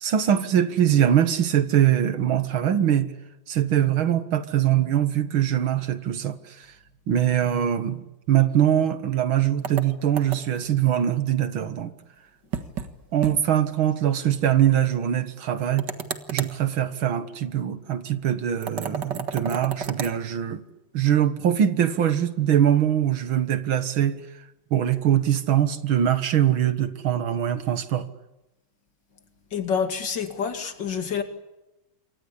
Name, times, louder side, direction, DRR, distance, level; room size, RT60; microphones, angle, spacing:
voice 1, 0.0-3.1 3.5-6.7 7.1-11.9 13.1-15.9 16.3-20.6 20.9-24.2 24.7-28.1, right 10 dB, 75° right, 2.2 m, -22 dB
sound 1, 9.6-10.7 12.5-12.9 13.2-13.4 13.7-13.8 15.8-16.6 18.6-20.2, right 6 dB, 55° right, 2.2 m, -32 dB
voice 2, 29.5-31.2, left 6 dB, 60° left, 2.9 m, -27 dB
28.0 x 24.5 x 8.5 m
omnidirectional pair, 2.3 m